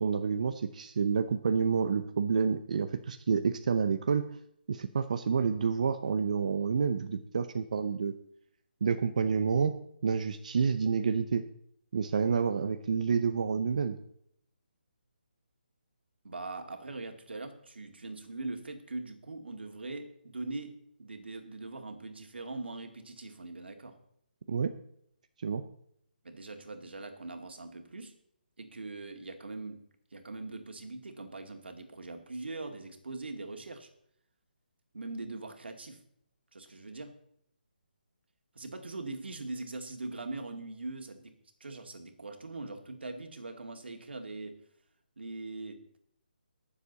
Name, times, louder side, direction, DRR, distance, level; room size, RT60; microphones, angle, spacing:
voice 1, 0.0-4.2 4.7-8.1 8.8-9.7 10.0-11.4 11.9-14.0 24.5-24.7 25.4-25.6, right 6 dB, 45° right, 8 dB, 0.7 m, -29 dB
voice 2, 16.2-24.0 26.2-28.1 28.6-29.8 30.1-33.9 34.9-36.0 36.5-37.1 38.5-41.3 41.6-44.6 45.2-45.8, right 2 dB, 85° right, 5 dB, 2.2 m, -41 dB
19.5 x 7.2 x 4.0 m, 0.70 s
hypercardioid pair, 170°, 6 cm